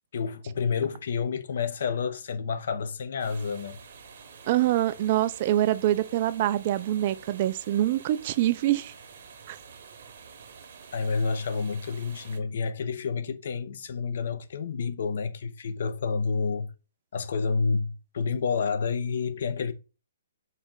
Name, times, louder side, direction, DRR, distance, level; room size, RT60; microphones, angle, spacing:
voice 1, 0.1-3.8 10.9-16.7 17.1-19.7, left 5 dB, 65° left, 0.6 m, -29 dB
sound 1, 3.2-12.4, right 6 dB, 60° right, 0.9 m, -48 dB
voice 2, 4.5-8.9 9.5-9.6, right 13 dB, 40° right, 0.3 m, -25 dB
4.1 x 2.4 x 3.6 m
hypercardioid pair, 145°, 0 cm